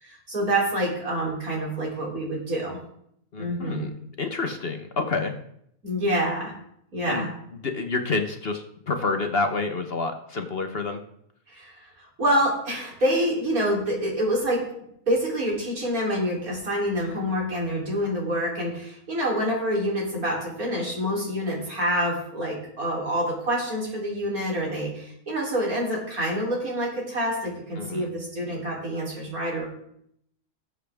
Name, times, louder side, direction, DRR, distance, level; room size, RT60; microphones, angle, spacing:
voice 1, 0.0-2.8 3.4-3.9 5.8-6.5 6.9-7.3 11.5-11.9 12.2-14.6 15.1-29.7, equal, 65° right, -3 dB, 3.9 m, -27 dB
voice 2, 3.3-3.9 4.2-5.3 7.1-7.3 7.6-11.0 27.8-28.1, left 3 dB, 45° left, 6 dB, 1.0 m, -28 dB
18.5 x 7.4 x 3.5 m, 0.72 s
omnidirectional pair, 1.7 m